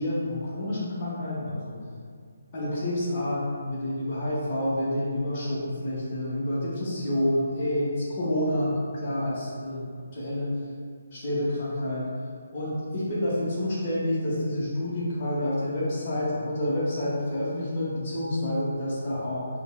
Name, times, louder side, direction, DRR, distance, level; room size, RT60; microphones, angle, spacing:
voice 1, 0.0-1.7 2.5-9.8 10.1-10.5 11.1-12.0 12.5-19.5, left 1 dB, 35° left, -10 dB, 0.8 m, -28 dB
5.2 x 2.0 x 2.3 m, 2.1 s
figure-of-eight pair, 155°, 0 cm